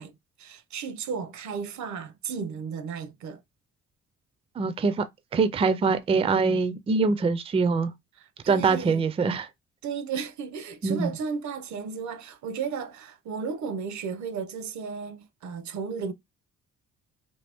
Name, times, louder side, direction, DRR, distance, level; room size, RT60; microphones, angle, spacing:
voice 1, 0.0-3.4 8.2-9.0 9.8-16.1, right 6 dB, 70° right, 0.7 m, -34 dB
voice 2, 4.6-5.1 5.3-7.9 8.5-9.5 10.8-11.1, right 4 dB, 20° right, 0.3 m, -23 dB
2.7 x 2.6 x 3.4 m
cardioid pair, 90°, 30 cm